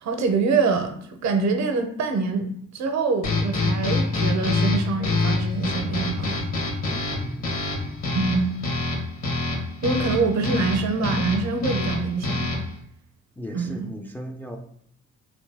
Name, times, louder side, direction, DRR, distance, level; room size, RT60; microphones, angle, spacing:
voice 1, 0.0-2.5 2.7-6.4 8.2-8.5 9.8-12.5 13.5-13.9, right 4 dB, 65° right, 6 dB, 0.6 m, -25 dB
sound 1, 3.2-12.8, left 2 dB, 60° left, 1.3 m, -26 dB
voice 2, 6.8-7.6 13.4-14.6, equal, 5° left, 3 dB, 0.3 m, -37 dB
3.1 x 2.6 x 3.3 m, 0.68 s
cardioid pair, 90°, 30 cm